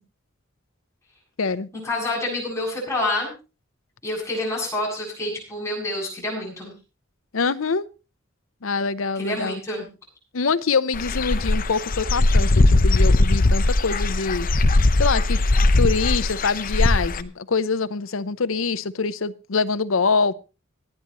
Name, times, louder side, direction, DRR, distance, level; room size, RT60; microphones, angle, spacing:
voice 1, 1.8-3.3 4.0-6.7 9.1-9.9, left 1 dB, 15° left, -2 dB, 7.9 m, -27 dB
voice 2, 7.3-7.9 8.6-9.6 10.3-14.5 15.0-15.4 15.8-20.3, left 4 dB, 90° left, 14 dB, 0.8 m, -24 dB
Dog / Bird, 10.9-17.2, left 2 dB, 45° left, 0.8 m, -19 dB
26.0 x 9.8 x 3.0 m, 0.32 s
head